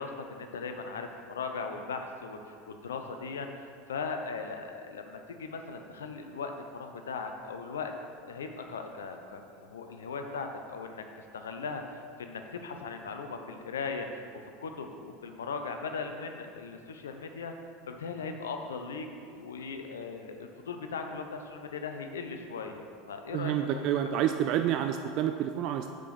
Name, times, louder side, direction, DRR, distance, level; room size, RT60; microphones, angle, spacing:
voice 1, 0.0-7.9 8.2-11.0 11.3-17.5 17.9-23.9, left 4 dB, 75° left, 5 dB, 0.7 m, -38 dB
voice 2, 23.3-25.9, right 10 dB, 50° right, 6 dB, 0.3 m, -28 dB
6.8 x 5.1 x 5.9 m, 2.3 s
figure-of-eight pair, 75°, 0 cm